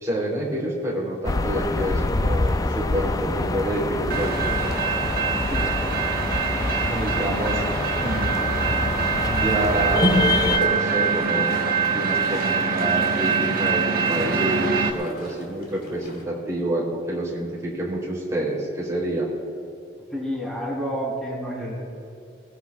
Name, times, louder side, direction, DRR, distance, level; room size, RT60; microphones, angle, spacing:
voice 1, 0.0-4.6 6.9-7.6 8.0-8.4 9.3-11.5 11.9-19.3, right 1 dB, 20° right, -5 dB, 3.2 m, -28 dB
sound 1, 1.2-10.6, left 3 dB, 20° left, 0.3 m, -26 dB
sound 2, 4.1-14.9, right 6 dB, 55° right, 1.1 m, -24 dB
sound 3, 8.3-16.2, equal, 60° left, 3.1 m, -32 dB
voice 2, 20.1-21.8, equal, 5° left, -6 dB, 3.5 m, -29 dB
21.5 x 18.0 x 2.4 m, 2.4 s
head